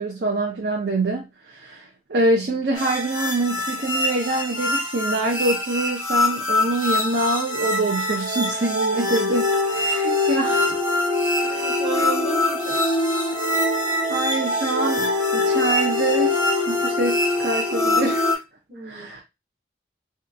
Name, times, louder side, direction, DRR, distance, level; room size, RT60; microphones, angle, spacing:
voice 1, 0.0-10.8 11.3-11.7 14.1-16.4 16.7-18.4 18.8-19.2, right 2 dB, 65° right, 0.6 m, -25 dB
sound 1, 2.8-18.4, left 2 dB, 10° right, 1.0 m, -23 dB
voice 2, 11.4-12.9 18.7-19.2, right 4 dB, 35° right, 0.9 m, -34 dB
2.8 x 2.4 x 2.5 m
head